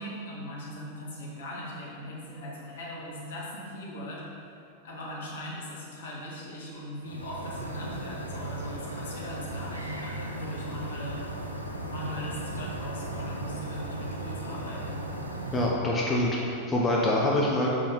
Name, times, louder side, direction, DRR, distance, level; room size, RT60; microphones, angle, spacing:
voice 1, 0.0-4.6 4.8-11.3 11.8-15.1 15.9-16.0, left 1 dB, 60° left, -4 dB, 1.7 m, -39 dB
sound 1, 7.0-15.7, right 2 dB, 85° right, 0.6 m, -37 dB
voice 2, 15.5-17.7, left 1 dB, 15° left, -4 dB, 0.8 m, -25 dB
6.5 x 5.8 x 4.1 m, 2.5 s
figure-of-eight pair, 90°, 0 cm